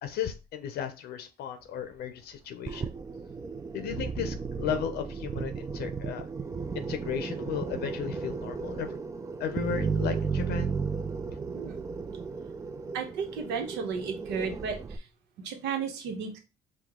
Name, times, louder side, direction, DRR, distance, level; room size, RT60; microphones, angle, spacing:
voice 1, 0.0-2.9 3.7-6.3 6.7-9.0 9.4-10.7, left 8 dB, 70° left, 8 dB, 0.6 m, -35 dB
sound 1, 2.7-15.0, right 5 dB, 20° right, 0.3 m, -34 dB
voice 2, 12.9-14.7 15.4-16.4, right 6 dB, 85° right, 4 dB, 1.0 m, -33 dB
4.8 x 2.3 x 3.6 m, 0.30 s
cardioid pair, 110°, 17 cm